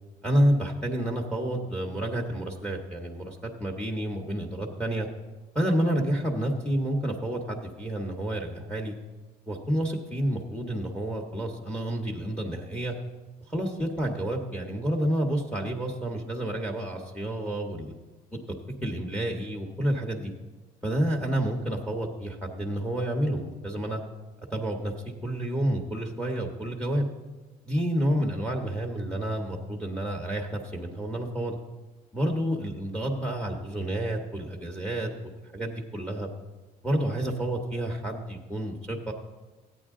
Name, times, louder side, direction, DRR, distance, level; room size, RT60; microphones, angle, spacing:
voice 1, 0.2-5.1 5.5-8.9 9.5-12.9 13.5-17.9 18.8-20.3 20.8-24.0 24.5-24.9 25.2-27.1 27.6-31.6 32.1-35.1 35.5-36.3 36.8-39.1, right 1 dB, 5° left, 1 dB, 1.1 m, -29 dB
14.0 x 9.1 x 3.7 m, 1.2 s
cardioid pair, 110°, 17 cm